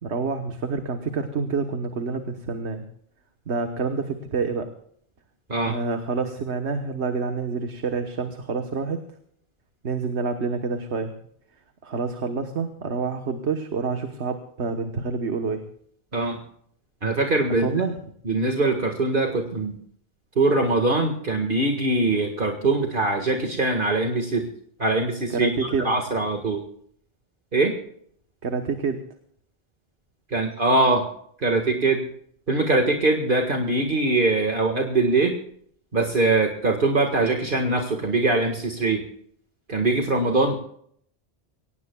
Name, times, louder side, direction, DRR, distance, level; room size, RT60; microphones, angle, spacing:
voice 1, 0.0-2.8 3.5-4.7 5.6-9.0 9.8-11.1 11.8-15.7 17.6-18.0 25.3-25.9 28.4-29.0, right 4 dB, 90° right, 6 dB, 1.5 m, -27 dB
voice 2, 17.0-17.8 18.3-19.8 20.4-24.5 24.8-26.6 27.5-27.8 30.3-31.1 31.4-32.1 32.5-35.4 35.9-39.0 39.7-40.5, right 2 dB, 50° right, 3 dB, 1.9 m, -22 dB
23.5 x 18.5 x 2.3 m, 0.64 s
omnidirectional pair, 1.1 m